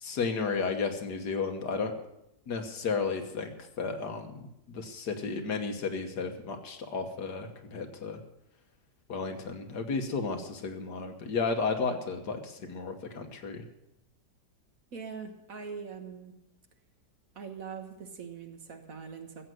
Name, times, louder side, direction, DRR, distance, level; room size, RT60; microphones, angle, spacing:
voice 1, 0.0-1.9 2.5-8.2 9.1-13.6, left 4 dB, 70° left, 5 dB, 1.9 m, -33 dB
voice 2, 14.9-16.5 17.3-19.5, right 6 dB, 55° right, 6 dB, 1.6 m, -42 dB
15.0 x 7.9 x 7.7 m, 0.84 s
omnidirectional pair, 1.8 m